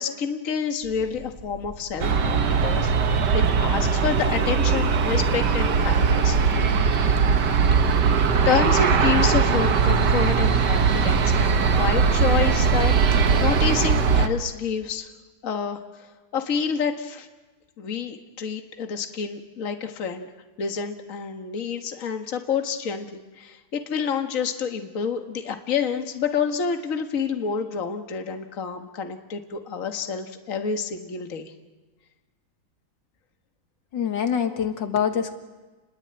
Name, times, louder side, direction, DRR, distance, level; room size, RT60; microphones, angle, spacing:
voice 1, 0.0-6.8 7.7-15.1 15.4-15.8 16.3-17.3 17.8-20.3 20.6-31.5, left 6 dB, 45° left, 6 dB, 1.9 m, -28 dB
sound 1, 0.8-13.6, right 1 dB, 45° right, 4.3 m, -36 dB
Aircraft, 2.0-14.3, right 5 dB, 65° right, 1.9 m, -20 dB
voice 2, 33.9-35.3, left 8 dB, 70° left, 7 dB, 2.3 m, -25 dB
29.5 x 21.0 x 8.9 m, 1.2 s
omnidirectional pair, 2.0 m